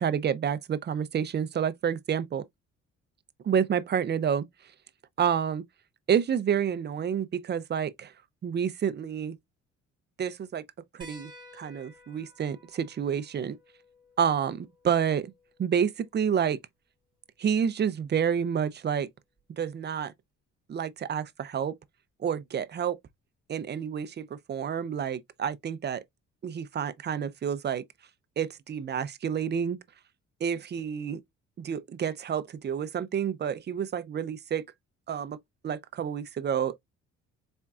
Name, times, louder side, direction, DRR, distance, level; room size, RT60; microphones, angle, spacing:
voice 1, 0.0-2.4 3.4-4.5 5.2-5.6 6.1-8.1 8.4-9.4 10.2-10.6 10.9-13.6 14.2-15.3 15.6-16.6 17.4-19.1 19.6-20.1 20.7-21.8 22.2-23.0 23.5-26.0 26.4-27.8 28.4-29.8 30.4-31.2 31.6-34.6 35.1-36.8, right 8 dB, 35° right, 0.5 m, -29 dB
sound 1, 11.0-16.1 17.6-17.7 19.4-19.5, equal, 15° right, 1.8 m, -54 dB
4.4 x 3.5 x 2.3 m
cardioid pair, 90°, 30 cm